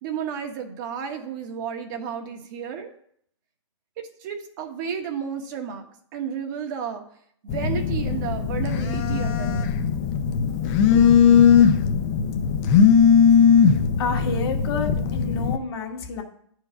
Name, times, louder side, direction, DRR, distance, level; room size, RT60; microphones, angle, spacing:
voice 1, 0.0-2.9 4.0-5.9 6.1-7.0 7.4-9.7, right 7 dB, 40° right, 4 dB, 1.3 m, -32 dB
Telephone, 7.5-15.6, left 7 dB, 30° left, 0.7 m, -19 dB
voice 2, 14.0-16.2, left 4 dB, 50° left, 2 dB, 1.8 m, -29 dB
9.6 x 4.7 x 5.8 m, 0.65 s
hypercardioid pair, 145°, 16 cm